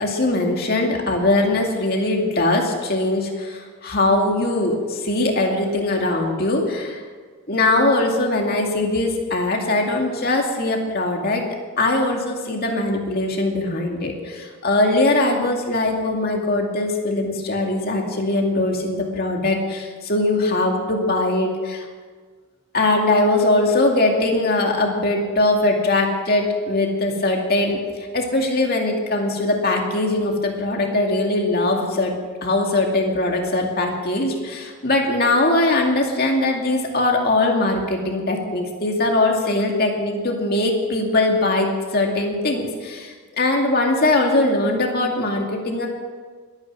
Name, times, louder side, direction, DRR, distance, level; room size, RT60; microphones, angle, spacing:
voice 1, 0.0-7.0 7.5-11.4 11.8-21.9 22.7-27.8 28.1-32.1 32.4-45.9, left 2 dB, 45° left, 1 dB, 2.4 m, -21 dB
22.0 x 9.6 x 6.2 m, 1.5 s
head